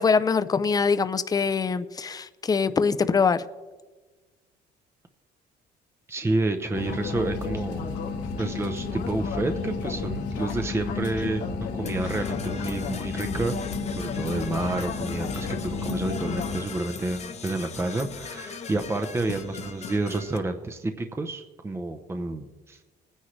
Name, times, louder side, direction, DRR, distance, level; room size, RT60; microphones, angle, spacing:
voice 1, 0.0-3.4, left 5 dB, 20° left, 12 dB, 0.6 m, -23 dB
voice 2, 6.1-7.9 8.4-13.6 14.0-22.8, right 2 dB, 15° right, 6 dB, 0.8 m, -29 dB
sound 1, 6.7-16.6, left 4 dB, 85° left, 1.7 m, -32 dB
Percussion / Brass instrument, 11.8-20.4, left 5 dB, 40° left, 1.0 m, -39 dB
19.5 x 9.9 x 3.2 m, 1.3 s
cardioid pair, 110°, 17 cm